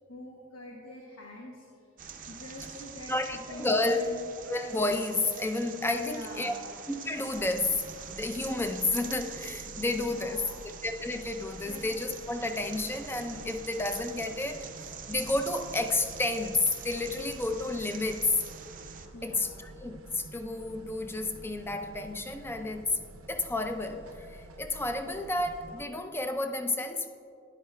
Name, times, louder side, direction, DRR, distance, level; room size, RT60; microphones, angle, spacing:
voice 1, 0.1-1.7 2.3-4.2 5.5-5.6 6.0-6.7 10.1-10.7 11.7-11.8 19.1-19.6, left 1 dB, 80° left, -2 dB, 1.1 m, -45 dB
sound 1, 2.0-19.1, right 7 dB, 40° right, 0.5 m, -45 dB
voice 2, 3.1-4.0 4.4-6.5 6.9-7.8 8.1-10.4 10.8-14.7 15.1-18.4 19.2-23.0 23.3-27.1, left 2 dB, 10° left, 7 dB, 0.4 m, -31 dB
sound 2, 7.3-25.8, right 1 dB, 90° right, 0.6 m, -49 dB
13.0 x 10.5 x 2.2 m, 2.4 s
head